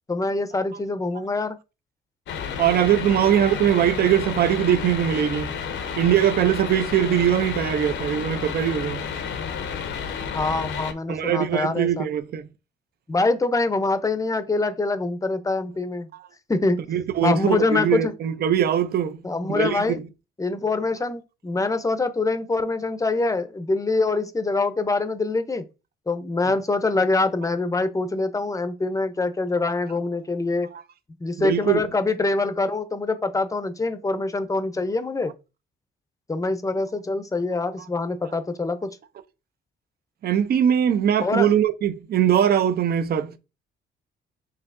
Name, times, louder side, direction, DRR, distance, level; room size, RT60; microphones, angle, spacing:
voice 1, 0.1-1.6 10.3-12.0 13.1-16.1 16.5-16.8 17.2-18.1 19.2-20.0 20.4-25.6 26.1-30.7 31.2-35.3 36.3-38.9 41.2-41.5, left 3 dB, 15° left, 0.6 m, -24 dB
sound 1, 2.3-10.9, left 6 dB, 70° left, 0.7 m, -31 dB
voice 2, 2.6-5.6 6.0-9.0 11.1-12.5 16.9-19.2 19.5-20.1 30.7-30.8 31.4-31.8 40.2-43.4, right 9 dB, 55° right, 0.5 m, -21 dB
5.6 x 2.7 x 2.6 m
cardioid pair, 90°, 20 cm